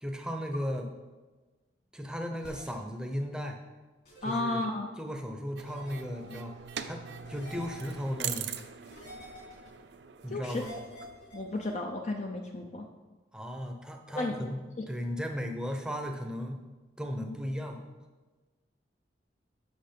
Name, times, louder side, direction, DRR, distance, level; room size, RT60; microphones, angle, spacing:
voice 1, 0.0-0.9 1.9-3.6 4.2-4.7 5.0-6.5 6.8-7.0 7.3-8.5 10.2-10.7 13.3-14.6 14.9-16.6 17.0-17.8, equal, 5° right, 3 dB, 0.8 m, -36 dB
sound 1, 2.4-2.7 4.1-4.3 5.7-5.9 7.3-8.1 8.9-9.7 10.5-11.7, left 1 dB, 60° left, 3.2 m, -48 dB
voice 2, 4.2-4.9 10.3-10.7 11.3-12.9 14.1-14.3, left 2 dB, 40° left, 2 dB, 0.6 m, -33 dB
sound 2, 5.6-11.7, right 8 dB, 70° right, 0.5 m, -42 dB
8.0 x 6.1 x 5.2 m, 1.3 s
head